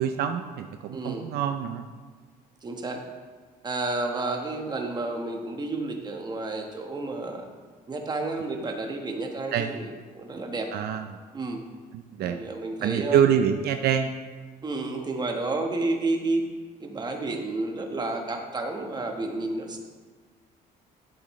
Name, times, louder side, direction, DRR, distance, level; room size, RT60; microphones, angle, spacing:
voice 1, 0.0-1.9 9.5-9.7 10.7-11.2 12.2-12.4 12.8-14.1, right 9 dB, 70° right, 7 dB, 0.5 m, -25 dB
voice 2, 0.9-1.3 2.6-3.0 3.6-7.5 7.9-10.7 11.3-11.6 12.2-13.3 14.6-16.5 16.8-19.8, right 2 dB, 25° right, 3 dB, 1.2 m, -31 dB
11.0 x 7.9 x 3.2 m, 1.5 s
cardioid pair, 110°, 17 cm